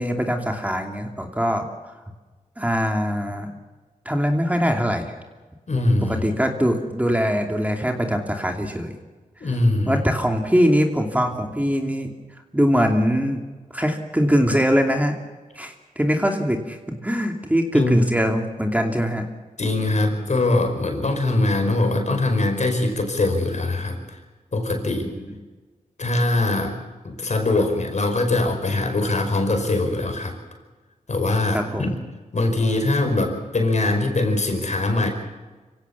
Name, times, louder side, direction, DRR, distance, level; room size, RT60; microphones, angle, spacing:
voice 1, 0.0-1.9 2.6-3.5 4.0-5.1 6.1-9.0 9.4-9.5 9.9-12.1 12.5-13.4 13.7-15.2 15.5-19.2 24.8-25.2 31.5-32.0, equal, 10° right, 3 dB, 2.7 m, -22 dB
voice 2, 5.7-6.4 9.4-9.9 17.7-18.1 19.6-24.2 24.5-25.1 26.0-26.8 27.0-30.3 31.1-31.9 32.3-35.1, left 2 dB, 55° left, 5 dB, 5.1 m, -22 dB
25.5 x 16.5 x 7.2 m, 1.3 s
cardioid pair, 65°, 14 cm